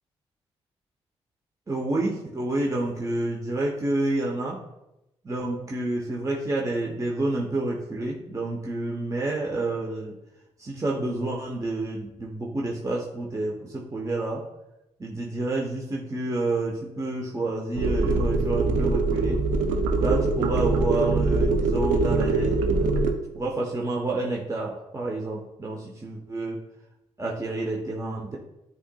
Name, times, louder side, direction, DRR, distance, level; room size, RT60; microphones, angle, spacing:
voice 1, 1.7-4.6 5.2-10.2 10.6-14.4 15.0-19.4 20.0-22.9 23.3-26.6 27.2-28.4, right 2 dB, 25° right, -2 dB, 0.8 m, -29 dB
sound 1, 17.7-23.1, right 3 dB, 90° right, 0.4 m, -23 dB
7.9 x 2.8 x 2.3 m, 0.92 s
supercardioid pair, 50°, 12 cm